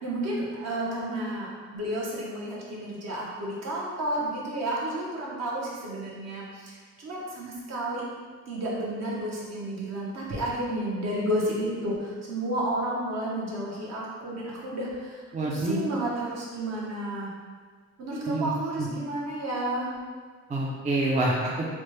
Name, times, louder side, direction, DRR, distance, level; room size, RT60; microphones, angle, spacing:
voice 1, 0.0-8.0 8.5-17.3 18.0-19.9, right 1 dB, 60° right, -5 dB, 0.9 m, -31 dB
voice 2, 15.3-15.8 18.1-18.5 18.8-18.9 20.5-21.7, right 2 dB, 25° right, -3 dB, 0.4 m, -27 dB
3.2 x 2.2 x 3.2 m, 1.5 s
cardioid pair, 90°, 30 cm